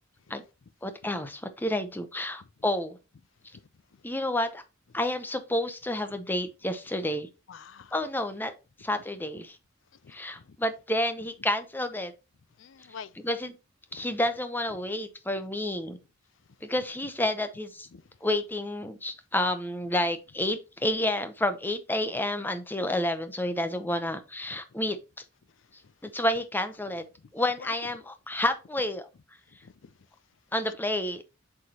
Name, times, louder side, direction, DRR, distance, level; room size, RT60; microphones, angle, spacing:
voice 1, 0.8-3.0 4.0-4.6 4.9-7.3 7.9-8.5 8.8-9.6 10.1-12.1 13.2-13.6 13.9-16.0 16.6-17.9 18.2-25.0 26.0-27.0 27.3-29.1 30.5-31.2, left 1 dB, 10° left, 0.7 m, -30 dB
voice 2, 7.5-7.9 10.0-10.6 12.6-13.1 13.9-14.1 17.9-18.0 24.5-24.6 25.8-25.9 27.6-27.7 29.6-29.9, left 6 dB, 65° left, 0.5 m, -47 dB
8.0 x 4.9 x 2.8 m
head